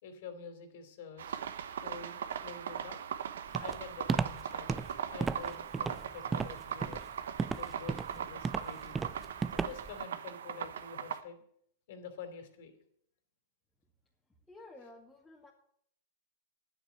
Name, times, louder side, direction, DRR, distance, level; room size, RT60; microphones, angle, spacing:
voice 1, 0.0-3.1 3.6-7.0 7.5-9.2 9.5-11.4 11.9-12.7, left 6 dB, 65° left, 8 dB, 3.0 m, -48 dB
sound 1, 1.2-11.2, right 8 dB, 80° right, 1.0 m, -40 dB
Walk footsteps, 3.5-10.0, right 5 dB, 15° right, 0.5 m, -35 dB
voice 2, 14.5-15.5, left 2 dB, 10° left, -4 dB, 2.1 m, -52 dB
10.0 x 8.9 x 8.2 m, 0.68 s
hypercardioid pair, 120°, 0 cm